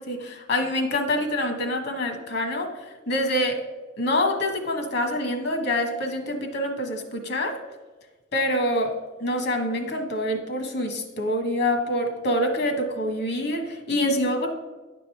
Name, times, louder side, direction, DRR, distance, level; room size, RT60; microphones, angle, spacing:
voice 1, 0.0-3.6 4.0-7.6 8.3-14.5, left 1 dB, 60° left, 5 dB, 1.3 m, -26 dB
10.0 x 5.3 x 4.6 m, 1.3 s
head